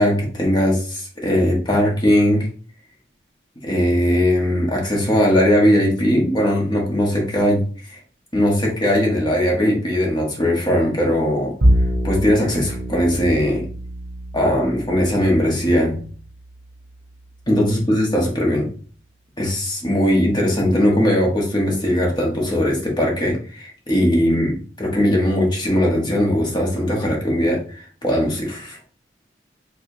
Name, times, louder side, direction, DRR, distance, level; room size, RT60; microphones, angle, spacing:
voice 1, 0.0-2.5 3.6-7.6 8.3-11.5 12.0-13.6 14.3-16.0 17.5-18.7 19.4-28.8, equal, 25° left, -2 dB, 1.2 m, -19 dB
Bowed string instrument, 11.6-18.0, equal, 85° right, 0.9 m, -25 dB
4.7 x 3.2 x 2.7 m, 0.43 s
head